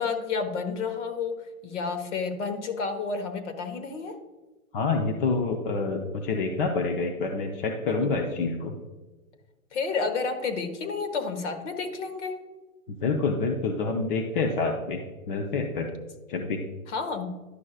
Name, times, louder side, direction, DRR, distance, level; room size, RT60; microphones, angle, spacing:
voice 1, 0.0-4.2 7.9-8.1 9.7-12.3 16.9-17.3, left 4 dB, 55° left, 6 dB, 1.3 m, -30 dB
voice 2, 4.7-8.7 12.9-15.9 16.3-16.6, left 4 dB, 40° left, 3 dB, 0.7 m, -27 dB
11.5 x 6.2 x 2.4 m, 1.2 s
hypercardioid pair, 150°, 42 cm